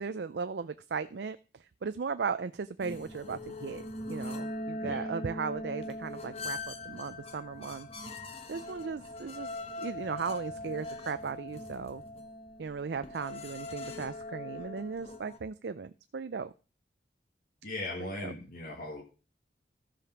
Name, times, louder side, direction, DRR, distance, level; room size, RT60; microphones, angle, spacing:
voice 1, 0.0-7.9 8.5-9.5 9.8-12.0 12.6-16.5 18.0-18.3, right 5 dB, 70° right, 12 dB, 0.5 m, -37 dB
sound 1, 2.8-15.4, left 1 dB, 35° left, 1.3 m, -41 dB
voice 2, 17.6-19.0, left 2 dB, 55° left, -2 dB, 1.8 m, -38 dB
14.0 x 5.1 x 6.0 m, 0.34 s
head